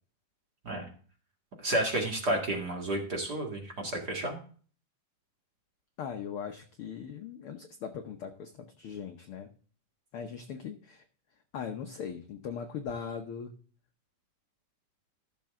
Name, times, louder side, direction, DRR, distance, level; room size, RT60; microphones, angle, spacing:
voice 1, 1.6-4.4, right 1 dB, 35° right, 1 dB, 2.0 m, -31 dB
voice 2, 6.0-9.5 10.1-11.0 11.5-13.5, left 7 dB, 80° left, 5 dB, 1.2 m, -39 dB
15.0 x 6.8 x 3.6 m, 0.43 s
omnidirectional pair, 3.7 m